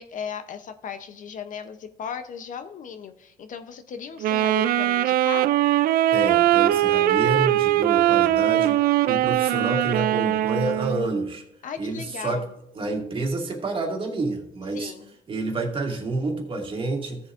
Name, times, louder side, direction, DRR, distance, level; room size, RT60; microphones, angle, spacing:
voice 1, 0.0-5.5 11.6-12.5 14.7-15.1, left 7 dB, 50° left, 9 dB, 0.7 m, -36 dB
Wind instrument woodwind instrument, 4.2-11.1, right 13 dB, 60° right, 0.4 m, -21 dB
voice 2, 6.1-8.8 9.1-11.4 11.8-12.4 12.7-14.9 15.3-17.2, right 2 dB, 30° right, 1 dB, 2.0 m, -28 dB
16.0 x 7.1 x 2.5 m, 0.81 s
cardioid pair, 110°, 17 cm